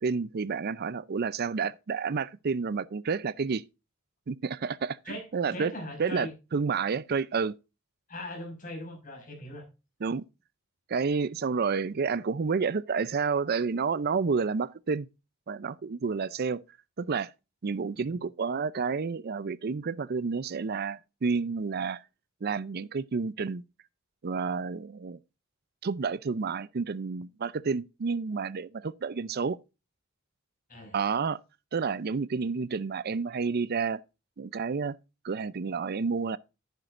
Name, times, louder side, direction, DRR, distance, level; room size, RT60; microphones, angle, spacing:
voice 1, 0.0-3.6 4.3-5.7 6.0-7.5 10.0-10.2 10.9-15.1 15.5-16.6 17.0-17.3 17.6-22.0 22.4-23.6 24.2-25.2 25.8-29.6 30.9-31.4 31.7-34.0 34.4-35.0 35.2-36.4, right 5 dB, 50° right, 0.5 m, -30 dB
voice 2, 5.0-6.3 8.1-9.6 18.0-18.1 30.7-31.0, left 1 dB, 40° left, 5.6 m, -40 dB
11.0 x 10.5 x 2.5 m
head